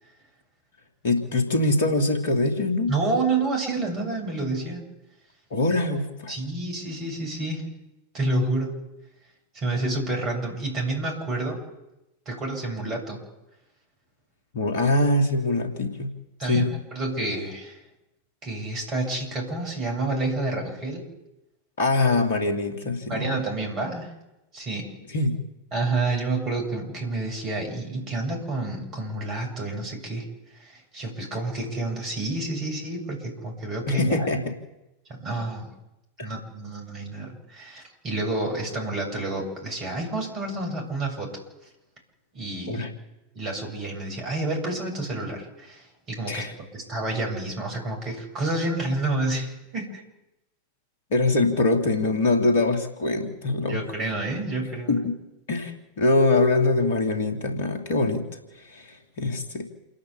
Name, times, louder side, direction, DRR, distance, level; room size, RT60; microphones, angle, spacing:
voice 1, 1.0-3.0 5.5-6.3 14.5-16.1 16.5-16.7 21.8-23.4 25.1-25.4 33.9-34.5 36.2-36.3 42.7-42.9 46.3-46.5 51.1-53.8 54.9-55.2 55.5-59.7, left 2 dB, 60° left, 4 dB, 3.0 m, -23 dB
voice 2, 2.9-4.9 6.3-7.7 8.1-8.8 9.5-11.6 12.3-13.2 16.4-17.8 18.4-21.1 23.1-24.1 24.5-25.0 25.7-30.3 30.5-34.3 35.1-35.7 36.2-41.4 42.3-42.8 43.3-50.0 53.6-55.0, right 2 dB, 30° right, 1 dB, 7.7 m, -29 dB
28.5 x 11.5 x 8.4 m, 0.95 s
figure-of-eight pair, 90°, 0 cm